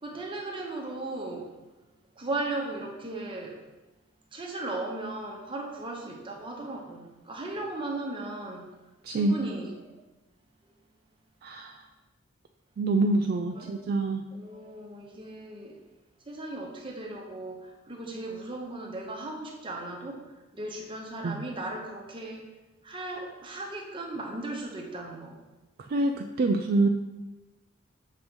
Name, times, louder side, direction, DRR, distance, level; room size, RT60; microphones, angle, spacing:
voice 1, 0.0-1.5 2.2-3.6 4.3-8.7 9.1-10.0 13.5-13.8 14.3-15.8 16.3-20.2 20.5-22.5 22.8-25.4, right 2 dB, 25° right, 0 dB, 0.9 m, -37 dB
voice 2, 9.0-9.4 11.4-11.8 12.8-14.2 21.2-21.4 25.9-26.9, right 2 dB, 50° right, 5 dB, 0.3 m, -26 dB
6.6 x 3.1 x 5.2 m, 1.1 s
head